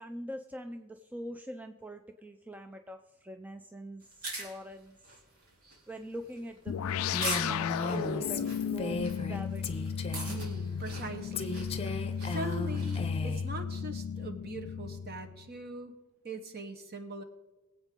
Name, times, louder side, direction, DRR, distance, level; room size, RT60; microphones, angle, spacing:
voice 1, 0.0-5.0 5.9-7.1 7.4-9.0 9.3-9.6, right 1 dB, 5° right, 6 dB, 0.4 m, -43 dB
sound 1, 4.0-13.1, right 2 dB, 85° right, 3.4 m, -43 dB
sound 2, 6.7-15.5, left 7 dB, 70° left, 0.3 m, -34 dB
Female speech woman speaking, 7.1-9.4 9.6-10.4 11.3-13.5, left 3 dB, 25° left, 0.7 m, -36 dB
voice 2, 10.3-11.6 12.2-15.9 16.2-17.2, right 2 dB, 45° right, 7 dB, 1.2 m, -41 dB
22.5 x 8.1 x 3.7 m, 1.1 s
head